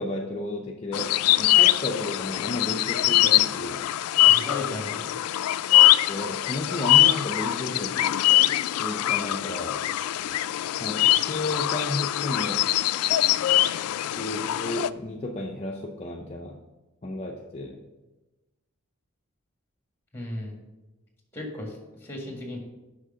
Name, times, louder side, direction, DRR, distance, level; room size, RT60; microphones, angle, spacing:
voice 1, 0.0-3.9 6.1-8.1 8.4-9.8 10.8-12.7 14.0-16.6 17.0-17.8, left 1 dB, 30° left, 0 dB, 0.5 m, -33 dB
sound 1, 0.9-14.9, left 14 dB, 90° left, 0.3 m, -22 dB
voice 2, 4.2-5.2 20.1-20.6 21.3-22.6, left 1 dB, 10° left, 1 dB, 1.6 m, -36 dB
6.4 x 5.7 x 6.6 m, 1.1 s
head